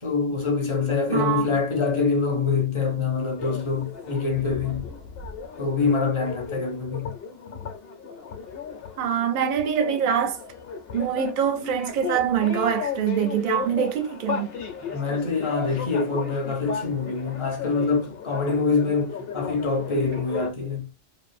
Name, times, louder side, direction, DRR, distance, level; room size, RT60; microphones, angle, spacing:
voice 1, 0.0-4.9 5.6-7.2 14.8-20.9, left 4 dB, 30° left, 0.6 m, -25 dB
voice 2, 1.1-1.5 9.0-10.4 10.9-14.5, right 8 dB, 55° right, 0.6 m, -24 dB
sound 1, 3.4-20.5, left 6 dB, 60° left, 0.9 m, -35 dB
2.6 x 2.4 x 2.4 m
omnidirectional pair, 1.2 m